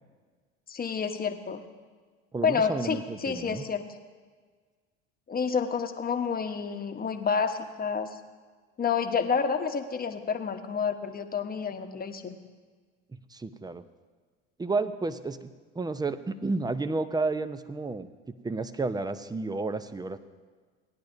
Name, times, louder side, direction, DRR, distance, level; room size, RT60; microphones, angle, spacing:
voice 1, 0.7-1.7 2.4-3.8 5.3-8.2 8.8-12.4, left 6 dB, 25° left, 7 dB, 1.1 m, -29 dB
voice 2, 2.3-3.6 13.3-13.8 14.6-15.4 15.7-18.1 18.4-20.2, right 3 dB, 10° right, 11 dB, 0.6 m, -31 dB
18.0 x 10.5 x 2.6 m, 1.5 s
hypercardioid pair, 75°, 35 cm